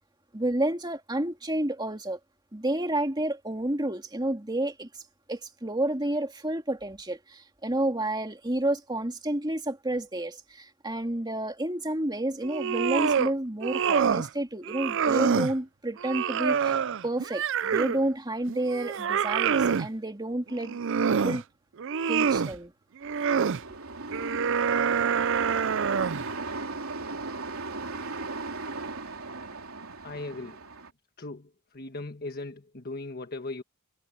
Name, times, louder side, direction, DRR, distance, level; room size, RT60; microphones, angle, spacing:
voice 1, 0.3-2.2 2.5-5.0 5.3-16.8 17.0-21.4 22.1-22.7, right 1 dB, 20° right, 2.6 m, -30 dB
sound 1, 12.4-13.3 13.6-14.3 14.7-15.5 16.0-18.0 18.5-19.9 20.5-21.4 21.8-22.5 23.0-23.6 24.1-26.3, right 6 dB, 60° right, 0.5 m, -26 dB
sound 2, 23.0-30.9, right 3 dB, 80° right, 3.4 m, -37 dB
voice 2, 30.0-30.6 31.2-33.6, left 2 dB, 45° left, 1.4 m, -38 dB
head